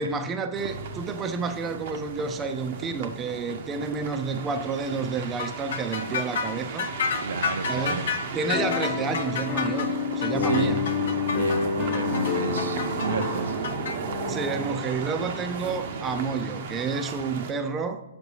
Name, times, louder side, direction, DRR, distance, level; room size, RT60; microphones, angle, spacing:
voice 1, 0.0-6.9 7.7-9.9 10.2-10.9 12.5-12.6 14.3-18.0, right 4 dB, 15° right, 7 dB, 0.5 m, -30 dB
sound 1, 0.5-17.5, right 5 dB, 50° right, 0.7 m, -35 dB
sound 2, 5.4-13.9, left 5 dB, 65° left, 0.9 m, -30 dB
voice 2, 7.2-8.1 10.4-10.7 11.3-13.5, right 4 dB, 80° right, 7 dB, 0.8 m, -32 dB
sound 3, 8.5-14.7, left 6 dB, 25° left, 0.8 m, -29 dB
6.8 x 5.9 x 2.8 m, 0.98 s
hypercardioid pair, 150°, 0 cm